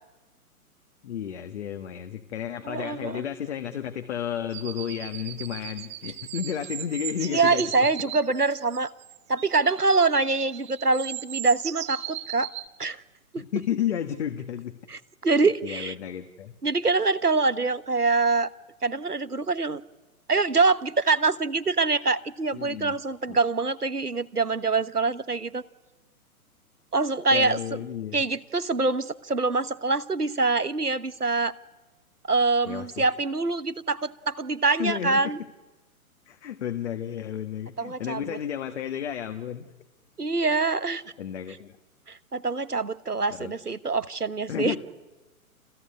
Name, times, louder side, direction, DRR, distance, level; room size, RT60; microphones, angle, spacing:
voice 1, 1.0-7.6 13.4-14.8 15.6-16.5 22.5-23.0 23.3-23.4 27.3-28.2 32.7-33.0 34.8-35.2 36.3-39.7 41.2-41.8 43.3-43.5 44.5-44.8, left 9 dB, 50° left, 7 dB, 1.6 m, -32 dB
voice 2, 2.6-3.2 7.3-8.9 9.3-12.5 12.8-13.0 13.3-13.5 14.9-15.9 16.6-18.5 18.8-19.8 20.3-25.6 26.9-27.6 28.1-31.5 32.3-35.4 37.8-38.2 40.2-41.0 42.1-44.8, right 3 dB, 90° right, 15 dB, 1.2 m, -25 dB
sound 1, 4.5-12.7, right 13 dB, 15° right, 1.1 m, -37 dB
28.5 x 19.0 x 9.7 m, 1.2 s
figure-of-eight pair, 120°, 45 cm